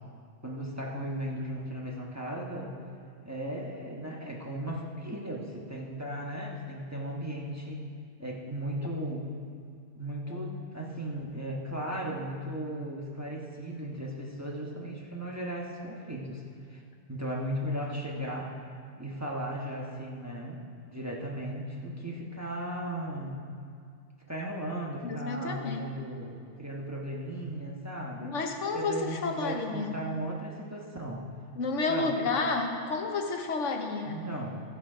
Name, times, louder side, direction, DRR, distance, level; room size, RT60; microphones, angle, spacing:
voice 1, 0.4-2.8 3.2-7.8 8.2-9.3 9.9-16.4 16.7-16.8 17.1-18.6 19.0-23.5 24.3-28.3 28.7-31.2 31.9-32.2 34.0-34.6, right 1 dB, 15° right, -2 dB, 1.2 m, -36 dB
voice 2, 25.0-26.0 28.2-29.9 31.6-34.2, left 3 dB, 85° left, 4 dB, 1.3 m, -31 dB
15.0 x 7.1 x 5.1 m, 2.3 s
omnidirectional pair, 1.2 m